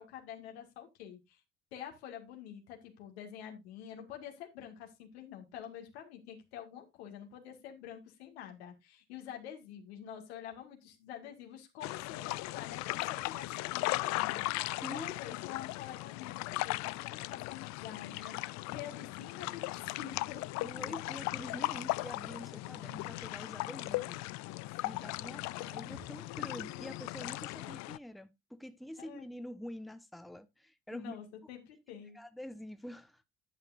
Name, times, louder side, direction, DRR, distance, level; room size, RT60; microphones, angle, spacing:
voice 1, 0.0-1.4 1.7-20.6 24.4-25.0 25.9-26.2 29.0-29.2 30.9-32.2, left 9 dB, 80° left, 2.1 m, -47 dB
sound 1, 11.8-28.0, left 21 dB, 60° left, 0.5 m, -38 dB
voice 2, 14.8-15.3 18.2-18.5 20.6-24.3 24.8-31.2 32.1-33.2, equal, ahead, 1.0 m, -46 dB
10.5 x 8.8 x 2.6 m
hypercardioid pair, 60°, 32 cm